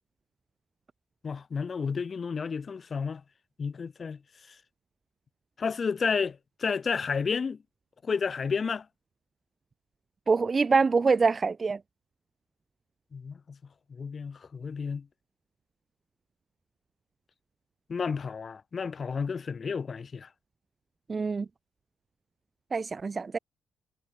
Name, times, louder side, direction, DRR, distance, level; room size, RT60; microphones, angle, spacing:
voice 1, 1.2-3.2 3.6-4.2 4.5-4.6 5.6-7.6 8.0-8.9 13.1-13.6 13.9-15.1 17.9-20.3, left 5 dB, 40° left, 4.2 m, -31 dB
voice 2, 10.3-11.8 21.1-21.4 22.7-23.4, right 4 dB, 35° right, 1.5 m, -25 dB
cardioid pair, 90°, 0 cm